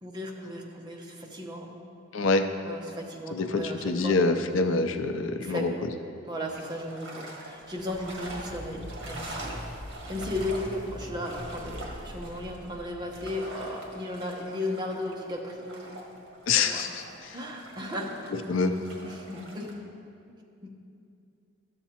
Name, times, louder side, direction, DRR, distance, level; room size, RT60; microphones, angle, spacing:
voice 1, 0.0-1.8 2.6-4.2 5.4-5.7 6.2-9.6 10.1-16.0 16.6-16.8 17.3-18.3 19.0-19.7, left 1 dB, 20° right, 0 dB, 0.8 m, -35 dB
voice 2, 2.1-2.5 3.3-5.7 16.5-17.4 18.5-18.7, left 3 dB, 70° left, 8 dB, 0.5 m, -26 dB
sound 1, 6.5-19.7, right 1 dB, 65° right, 1.5 m, -44 dB
sound 2, 7.7-14.1, equal, 45° left, 1.2 m, -43 dB
13.0 x 7.1 x 2.9 m, 2.5 s
head